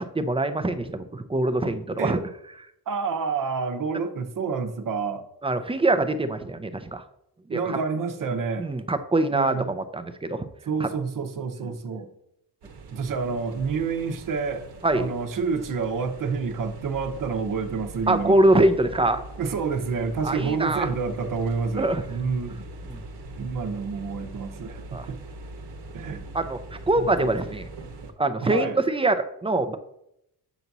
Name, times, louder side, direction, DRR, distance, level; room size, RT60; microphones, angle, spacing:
voice 1, 0.0-2.2 5.4-7.0 7.5-7.8 8.2-10.5 10.8-10.9 11.6-11.7 14.8-15.1 18.1-19.2 20.2-20.9 21.8-22.0 22.9-23.0 24.9-25.1 26.3-27.7 28.2-29.8, right 2 dB, 15° right, 10 dB, 0.5 m, -24 dB
voice 2, 2.9-5.3 7.5-8.7 9.3-9.7 10.6-12.1 12.9-14.7 14.9-18.4 19.4-22.6 23.4-24.8 25.1-25.2 25.9-26.2 27.0-27.3 28.4-28.8, right 5 dB, 55° right, 7 dB, 0.9 m, -28 dB
sound 1, 12.6-28.1, right 3 dB, 75° right, 1.1 m, -41 dB
8.0 x 2.7 x 5.9 m, 0.80 s
cardioid pair, 105°, 40 cm